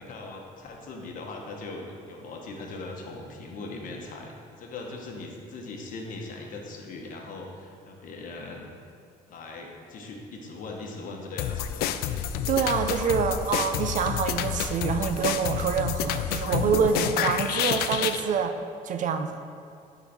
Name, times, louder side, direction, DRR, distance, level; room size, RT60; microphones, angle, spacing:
voice 1, 0.0-8.7 9.3-11.9 13.0-13.4, left 3 dB, 60° left, 1 dB, 1.2 m, -40 dB
sound 1, 11.4-18.2, left 10 dB, 85° left, 0.4 m, -29 dB
voice 2, 12.5-18.5 18.8-19.4, right 6 dB, 55° right, 8 dB, 0.5 m, -26 dB
9.9 x 4.0 x 4.3 m, 2.3 s
cardioid pair, 115°, 16 cm